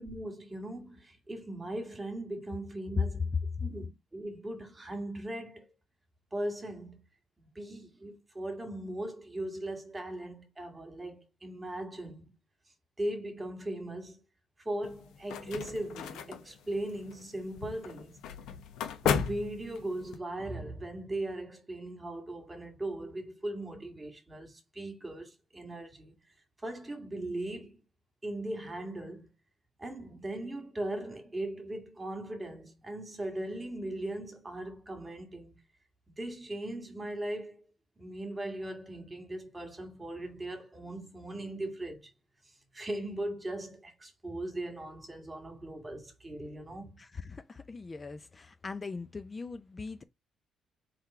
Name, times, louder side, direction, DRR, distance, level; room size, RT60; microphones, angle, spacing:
voice 1, 0.0-3.3 3.6-5.7 6.3-7.0 7.4-12.3 13.0-14.2 14.7-18.2 19.0-26.1 26.6-27.7 28.2-29.3 29.8-35.6 36.2-37.6 38.0-42.1 42.7-46.9, right 1 dB, 20° right, 2.0 m, -39 dB
sound 1, 14.8-20.2, left 7 dB, 85° left, 0.9 m, -36 dB
voice 2, 47.0-50.0, left 4 dB, 30° left, 0.4 m, -42 dB
3.7 x 3.3 x 4.3 m
cardioid pair, 90°, 0 cm